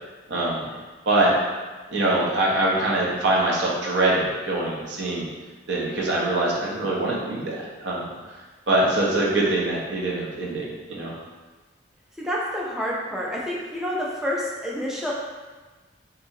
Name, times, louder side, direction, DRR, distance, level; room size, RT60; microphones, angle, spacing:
voice 1, 0.3-0.6 1.1-1.3 1.9-5.3 5.7-8.4 8.7-11.1, right 2 dB, 65° right, -4 dB, 0.6 m, -23 dB
voice 2, 12.2-15.1, equal, 5° right, -5 dB, 0.3 m, -28 dB
2.7 x 2.6 x 2.6 m, 1.3 s
head